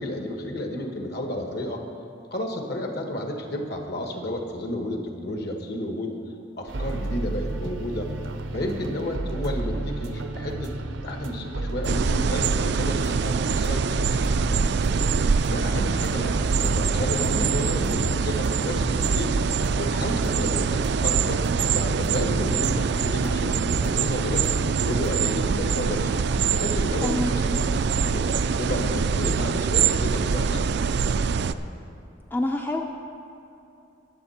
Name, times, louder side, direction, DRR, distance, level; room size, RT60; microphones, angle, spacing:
voice 1, 0.0-1.8 2.3-6.1 6.6-8.1 8.5-10.7 11.0-14.9 15.5-19.4 19.7-24.5 24.8-26.1 26.5-27.8 28.1-30.7, left 1 dB, 55° left, 3 dB, 1.4 m, -31 dB
sound 1, 6.7-25.4, right 2 dB, 80° right, 0.8 m, -32 dB
sound 2, 11.8-31.5, right 5 dB, 60° right, 0.4 m, -24 dB
voice 2, 32.3-32.8, left 1 dB, 10° left, 2 dB, 0.4 m, -26 dB
21.0 x 7.3 x 4.3 m, 2.8 s
head